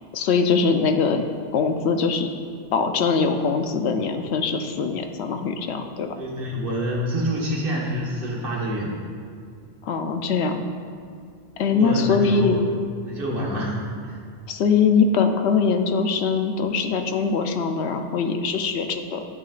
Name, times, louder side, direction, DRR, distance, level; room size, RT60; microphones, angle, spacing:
voice 1, 0.1-1.2 1.5-2.3 2.7-6.1 9.8-10.6 11.6-12.6 14.5-19.2, left 5 dB, 75° left, 6 dB, 0.9 m, -22 dB
voice 2, 6.1-8.9 11.6-12.6 13.0-13.8 14.0-14.2, equal, 55° right, -3 dB, 1.6 m, -27 dB
12.0 x 7.8 x 2.5 m, 2.2 s
omnidirectional pair, 1.1 m